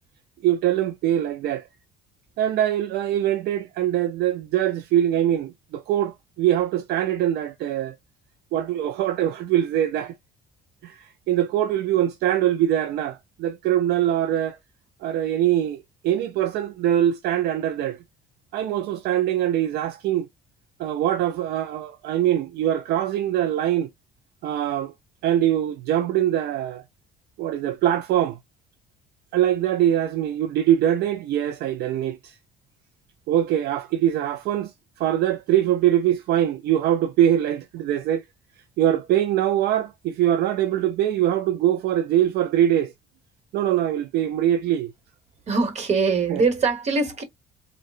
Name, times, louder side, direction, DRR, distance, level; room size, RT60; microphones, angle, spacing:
voice 1, 0.4-1.7 2.4-7.9 8.5-10.2 10.8-14.6 15.0-18.0 18.5-20.3 20.8-23.9 24.4-24.9 25.2-26.8 27.4-28.4 29.3-32.4 33.3-34.7 35.0-38.2 38.8-42.9 43.5-44.9 46.3-46.4, right 11 dB, 70° right, 0.4 m, -23 dB
voice 2, 45.5-47.2, right 4 dB, 40° right, 1.2 m, -22 dB
3.6 x 2.2 x 2.4 m
cardioid pair, 110°, 17 cm